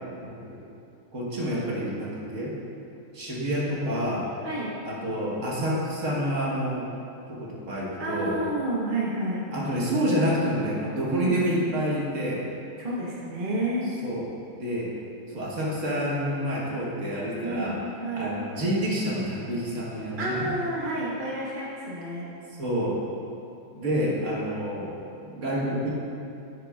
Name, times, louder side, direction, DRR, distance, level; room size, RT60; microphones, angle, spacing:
voice 1, 0.2-0.6 1.1-2.5 3.1-4.3 4.8-6.9 7.3-8.4 9.5-12.4 14.0-14.2 14.6-14.9 15.3-17.8 18.2-20.5 22.6-23.0 23.7-24.9 25.2-25.9, equal, 65° right, -6 dB, 1.7 m, -28 dB
voice 2, 8.0-9.4 11.1-11.5 12.8-13.9 17.4-18.4 20.2-22.3, right 1 dB, 40° right, -6 dB, 1.2 m, -30 dB
10.5 x 6.9 x 2.4 m, 2.7 s
omnidirectional pair, 1.4 m